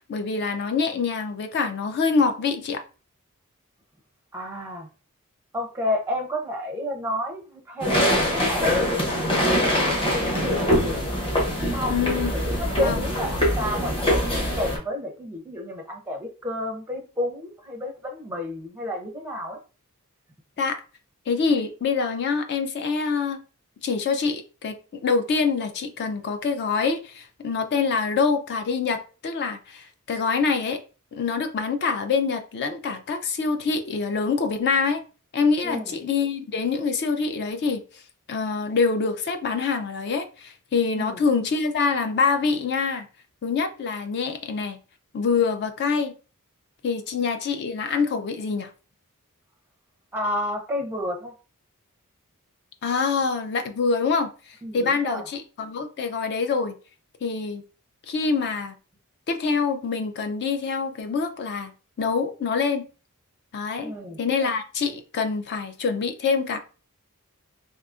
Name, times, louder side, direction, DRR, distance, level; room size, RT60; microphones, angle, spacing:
voice 1, 0.1-2.8 11.9-12.3 12.8-13.0 20.6-20.8 21.3-23.4 23.8-30.8 31.1-35.0 35.3-38.0 38.3-43.1 43.4-44.8 45.1-46.1 46.8-48.7 52.8-56.7 57.2-57.6 58.1-58.7 59.3-61.7 62.0-62.9 63.5-63.9 64.2-66.6, left 5 dB, 50° left, 0.4 m, -25 dB
voice 2, 4.3-4.9 5.5-7.9 8.3-11.1 11.7-12.0 12.4-19.6 35.6-35.9 40.9-41.2 50.1-51.3 54.6-55.2 63.8-64.2, left 1 dB, 10° right, 0.5 m, -31 dB
sound 1, 7.8-14.8, equal, 25° left, 0.8 m, -23 dB
3.6 x 2.7 x 2.4 m
head